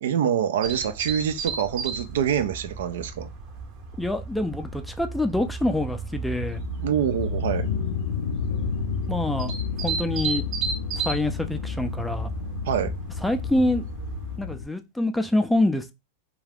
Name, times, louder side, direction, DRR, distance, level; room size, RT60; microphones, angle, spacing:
voice 1, 0.0-3.3 6.8-7.7 12.7-12.9, right 9 dB, 80° right, 0.3 m, -25 dB
sound 1, 0.6-14.4, right 5 dB, 45° right, 0.7 m, -34 dB
voice 2, 4.0-6.6 9.1-9.5 9.8-10.4 10.9-12.3 13.2-13.8 14.4-15.9, left 1 dB, 5° left, 0.3 m, -26 dB
sound 2, 6.4-14.6, left 7 dB, 85° left, 0.3 m, -31 dB
2.4 x 2.3 x 3.3 m
supercardioid pair, 125°, 0 cm